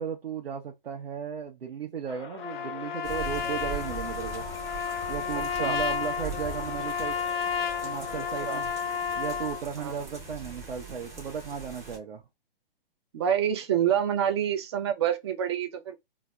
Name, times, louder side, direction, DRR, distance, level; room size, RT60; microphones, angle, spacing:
voice 1, 0.0-4.4 5.1-7.2 7.8-8.7 9.1-12.2, right 7 dB, 85° right, 0.7 m, -35 dB
sound 1, 2.1-10.0, left 4 dB, 30° left, 0.4 m, -46 dB
Trumpet, 2.4-9.6, left 7 dB, 90° left, 0.5 m, -32 dB
sound 2, 3.0-12.0, right 4 dB, 10° right, 0.8 m, -41 dB
voice 2, 5.3-5.8 8.4-8.6 9.8-10.1 13.1-16.0, right 9 dB, 30° right, 0.4 m, -27 dB
4.0 x 2.0 x 2.2 m
hypercardioid pair, 140°, 29 cm